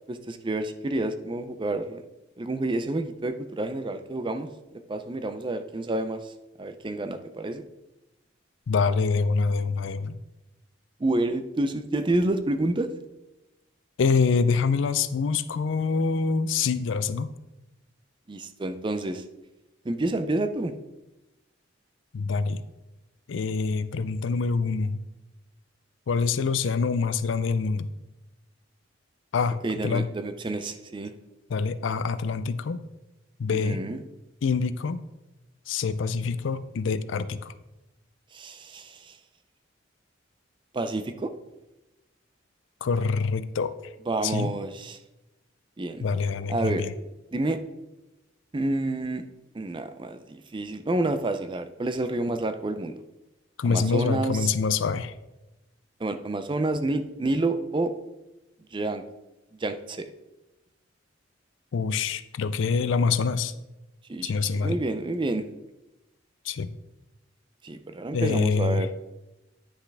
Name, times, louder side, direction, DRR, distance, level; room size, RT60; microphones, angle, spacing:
voice 1, 0.1-2.0 2.4-4.5 4.9-6.3 6.6-7.6 11.0-12.9 18.3-19.2 19.8-20.7 29.6-31.1 33.6-34.0 38.3-39.2 40.7-41.3 44.1-45.0 45.8-46.0 46.5-46.8 47.3-47.6 48.5-49.2 49.5-53.0 53.7-54.5 56.0-57.9 58.7-59.0 59.6-60.0 64.1-65.5 67.6-68.9, right 2 dB, 25° right, 9 dB, 0.4 m, -29 dB
voice 2, 8.7-10.2 14.0-17.3 22.1-22.6 23.3-25.0 26.1-27.9 29.3-29.6 29.8-30.1 31.5-32.8 33.4-33.8 34.4-35.0 35.7-37.5 42.8-43.9 44.2-44.5 46.0-46.9 53.6-55.1 61.7-63.5 64.2-64.8 66.4-66.7 68.1-68.9, left 4 dB, 70° left, 14 dB, 0.4 m, -25 dB
9.8 x 5.7 x 3.4 m, 0.98 s
head